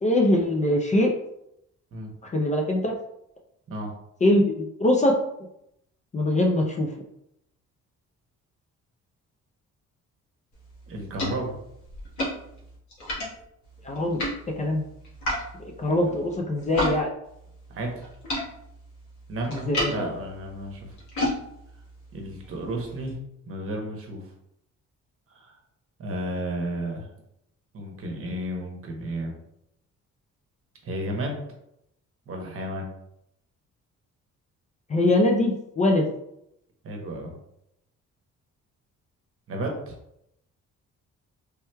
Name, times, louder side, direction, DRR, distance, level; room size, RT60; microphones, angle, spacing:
voice 1, 0.0-1.1 2.3-2.9 4.2-5.2 6.1-6.9 13.9-14.2 14.6-14.8 15.8-17.1 19.5-20.1 34.9-36.0, left 1 dB, 25° left, 1 dB, 0.4 m, -22 dB
sound 1, 10.5-17.0 17.2-23.1, left 1 dB, 70° left, 1.3 m, -34 dB
voice 2, 10.9-11.6 15.9-16.4 17.7-18.0 19.3-20.9 22.1-23.2 23.5-24.2 25.3-25.5 26.0-27.1 27.7-29.3 30.8-31.4 32.3-32.9 36.8-37.3 39.5-39.9, right 1 dB, 45° right, 1 dB, 0.9 m, -33 dB
3.3 x 2.9 x 2.2 m, 0.79 s
cardioid pair, 90°, 30 cm